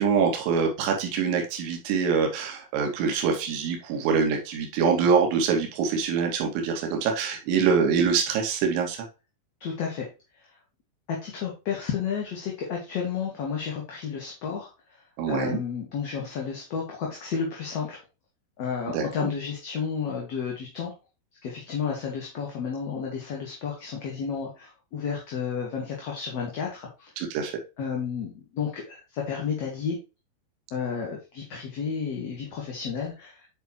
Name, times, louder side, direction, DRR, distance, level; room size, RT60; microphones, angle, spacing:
voice 1, 0.0-9.0 15.2-15.6 18.9-19.3 27.2-27.5, right 6 dB, 45° right, 2 dB, 2.3 m, -25 dB
voice 2, 9.6-10.1 11.1-14.7 15.3-18.0 18.6-20.9 21.4-27.1 27.8-30.0 30.7-33.5, left 6 dB, 45° left, -1 dB, 2.0 m, -32 dB
9.0 x 4.9 x 3.2 m, 0.29 s
figure-of-eight pair, 90°, 0 cm